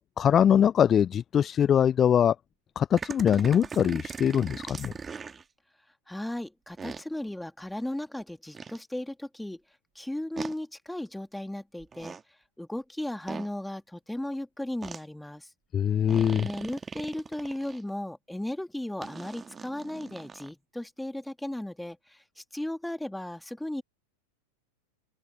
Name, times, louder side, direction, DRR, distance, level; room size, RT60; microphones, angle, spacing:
voice 1, 0.0-2.4 2.8-4.9 15.7-16.5, left 9 dB, 25° left, 0.6 m, -23 dB
sound 1, 3.0-5.4 6.8-7.0 8.5-8.8 10.4-10.5 11.8-12.2 13.3-13.5 14.8-15.0 16.1-17.8 19.0-20.5, right 5 dB, 15° right, 1.7 m, -40 dB
voice 2, 6.1-9.6 9.9-12.2 12.6-15.5 16.4-23.8, left 1 dB, 5° left, 2.9 m, -36 dB
open air
figure-of-eight pair, 90°, 0 cm